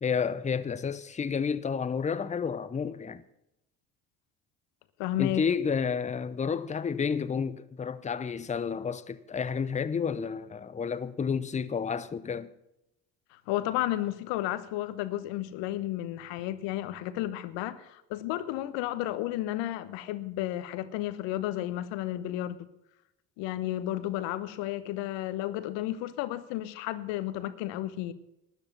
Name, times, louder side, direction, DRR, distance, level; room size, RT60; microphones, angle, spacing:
voice 1, 0.0-3.2 5.2-12.5, left 6 dB, 15° left, 0.7 m, -30 dB
voice 2, 5.0-5.4 13.3-22.7 23.4-28.1, left 14 dB, 60° left, 1.1 m, -32 dB
13.0 x 10.0 x 5.9 m
hypercardioid pair, 65°, 49 cm